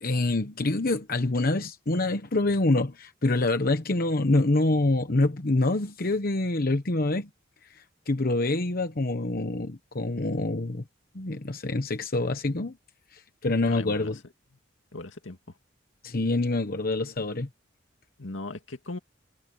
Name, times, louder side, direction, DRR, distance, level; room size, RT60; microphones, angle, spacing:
voice 1, 0.0-7.3 7.7-10.8 11.1-12.8 13.1-14.2 16.0-17.5, left 2 dB, 50° left, 1.0 m, -26 dB
voice 2, 13.7-14.1 14.9-15.4 18.2-19.0, left 2 dB, 75° left, 2.2 m, -38 dB
head